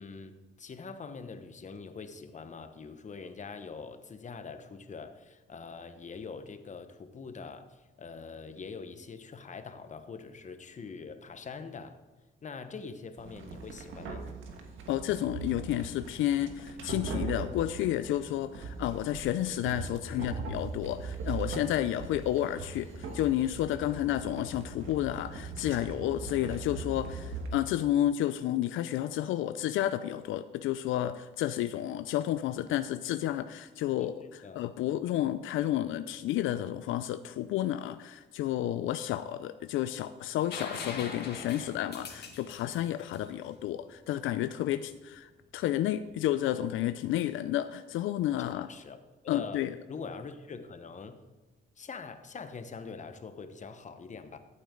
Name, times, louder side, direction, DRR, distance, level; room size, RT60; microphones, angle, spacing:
voice 1, 0.0-12.0 12.4-14.3 20.1-20.4 34.2-34.7 48.3-49.0 49.2-51.2 51.8-54.4, left 5 dB, 40° left, 9 dB, 1.1 m, -44 dB
sound 1, 13.2-27.5, right 4 dB, 80° right, 1.6 m, -40 dB
voice 2, 14.9-48.7 49.3-49.7, left 12 dB, 85° left, 11 dB, 0.4 m, -31 dB
sound 2, 40.5-44.2 46.1-46.2, left 4 dB, 55° left, 2.1 m, -42 dB
13.5 x 8.4 x 3.8 m, 1.2 s
cardioid pair, 90°, 20 cm